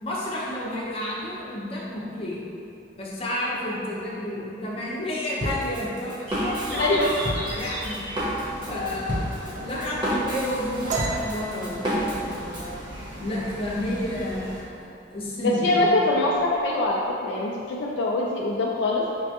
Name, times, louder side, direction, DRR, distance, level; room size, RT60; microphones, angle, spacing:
voice 1, 0.0-2.4 2.9-7.1 7.4-8.0 8.7-12.8 13.2-16.1, left 1 dB, 30° left, -6 dB, 0.7 m, -31 dB
Drum kit, 5.4-12.7, equal, 25° right, 0.8 m, -30 dB
sound 1, 6.3-14.6, right 1 dB, 85° right, 0.7 m, -38 dB
voice 2, 6.7-7.1 15.4-19.0, left 2 dB, 70° left, -3 dB, 0.3 m, -23 dB
sound 2, 10.9-14.3 14.7-15.0 15.4-15.9 16.1-16.9, right 3 dB, 45° right, 0.3 m, -34 dB
6.0 x 2.2 x 2.8 m, 2.7 s
head